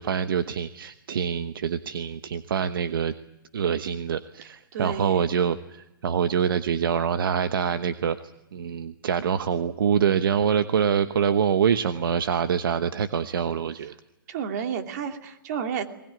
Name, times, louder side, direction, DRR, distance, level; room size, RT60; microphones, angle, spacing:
voice 1, 0.0-3.1 3.5-8.2 8.5-13.9, right 7 dB, 70° right, 11 dB, 1.1 m, -25 dB
voice 2, 4.7-5.3 14.3-15.9, right 7 dB, 50° right, 6 dB, 2.7 m, -31 dB
21.0 x 20.5 x 9.7 m, 0.93 s
hypercardioid pair, 135°, 12 cm